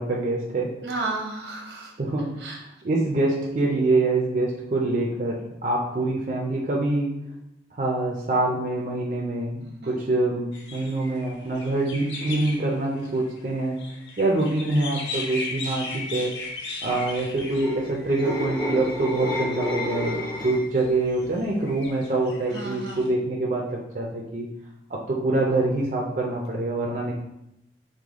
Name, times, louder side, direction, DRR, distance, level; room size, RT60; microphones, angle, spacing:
voice 1, 0.0-0.7 2.0-2.3 2.8-7.1 7.8-13.8 14.2-16.3 16.8-24.5 24.9-27.1, right 2 dB, 45° right, -2 dB, 0.5 m, -25 dB
voice 2, 0.8-1.9 2.4-2.6 9.6-10.0 19.8-20.3 22.5-23.0, right 2 dB, 80° right, 0 dB, 0.9 m, -34 dB
sound 1, 10.5-18.9 19.6-20.2 20.7-23.1, left 3 dB, 90° left, 0.7 m, -37 dB
sound 2, 17.4-20.8 21.2-21.5, left 1 dB, 25° left, 0.7 m, -30 dB
4.9 x 2.2 x 3.6 m, 0.82 s
head